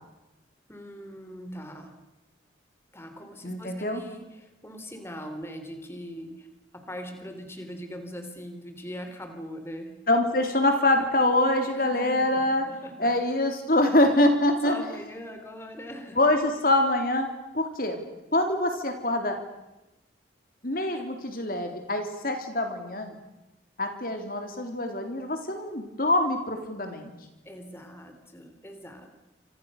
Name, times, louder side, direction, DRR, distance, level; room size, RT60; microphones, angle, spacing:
voice 1, 0.7-1.9 2.9-6.5 6.7-9.9 11.7-13.1 14.6-16.2 27.4-29.2, equal, 15° left, 6 dB, 3.8 m, -41 dB
voice 2, 3.4-4.0 10.1-12.7 13.0-14.8 16.2-18.0 18.3-19.4 20.6-23.2 23.8-27.1, left 1 dB, 50° left, 5 dB, 3.7 m, -25 dB
30.0 x 28.0 x 6.7 m, 1.0 s
head